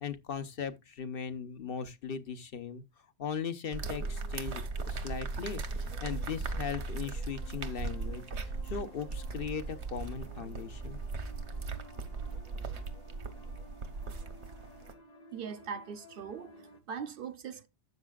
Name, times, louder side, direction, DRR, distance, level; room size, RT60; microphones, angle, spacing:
voice 1, 0.0-2.8 3.2-11.0, left 6 dB, 60° left, 1.0 m, -39 dB
sound 1, 0.9-1.0 3.8-16.8, left 2 dB, 40° left, 1.1 m, -55 dB
sound 2, 3.7-14.9, right 3 dB, 85° right, 1.4 m, -38 dB
voice 2, 15.3-17.7, right 6 dB, 60° right, 0.8 m, -41 dB
12.0 x 8.4 x 2.4 m
omnidirectional pair, 1.1 m